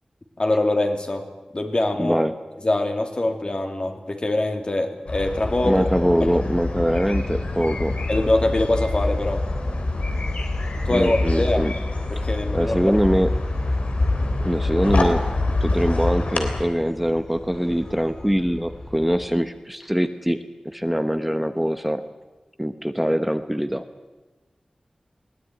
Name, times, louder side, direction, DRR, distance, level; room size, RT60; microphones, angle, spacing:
voice 1, 0.4-1.3 1.5-2.2 2.6-5.9 6.3-6.4 8.1-9.4 10.8-11.7 12.1-12.8, left 2 dB, 45° left, 4 dB, 3.0 m, -23 dB
voice 2, 2.0-2.3 5.6-7.9 10.9-11.7 12.2-12.3 12.5-13.3 14.4-15.2 15.6-20.4 20.6-22.0 22.6-23.8, equal, 5° right, 8 dB, 1.1 m, -23 dB
sound 1, 5.1-16.6, left 2 dB, 80° left, 3.5 m, -25 dB
sound 2, 6.6-19.3, left 1 dB, 25° left, 4.6 m, -38 dB
20.5 x 18.5 x 9.5 m, 1.2 s
wide cardioid pair, 65°, 2 cm